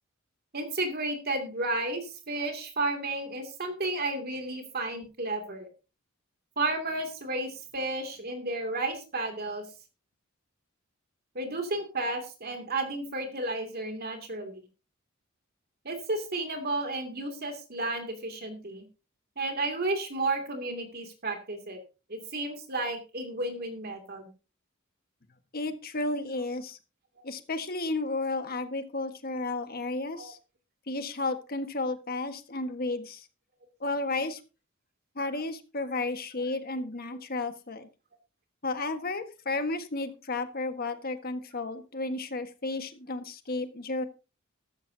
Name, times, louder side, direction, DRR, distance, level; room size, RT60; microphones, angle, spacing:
voice 1, 0.5-5.7 6.6-9.6 11.3-14.6 15.8-18.8 19.4-21.8 22.1-24.3 30.1-30.3, right 2 dB, 50° right, 5 dB, 2.6 m, -32 dB
voice 2, 25.5-26.8 27.2-30.4 30.9-33.3 33.8-34.4 35.1-37.9 38.6-44.0, left 2 dB, 45° left, 8 dB, 1.5 m, -33 dB
13.5 x 13.5 x 2.8 m, 0.31 s
head